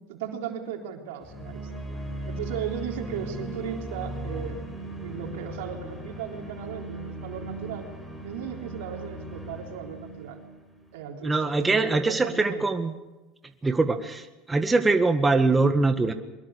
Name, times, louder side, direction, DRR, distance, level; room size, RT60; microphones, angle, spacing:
voice 1, 0.1-1.8 2.3-4.6 5.0-7.9 8.2-10.4 10.9-12.6, right 8 dB, 75° right, 2 dB, 3.9 m, -36 dB
sound 1, 1.2-11.3, right 1 dB, 10° left, 7.7 m, -38 dB
voice 2, 11.2-12.9 13.6-14.2 14.5-16.1, right 3 dB, 15° right, 7 dB, 1.7 m, -22 dB
23.0 x 21.5 x 6.8 m, 1.1 s
hypercardioid pair, 90°, 0 cm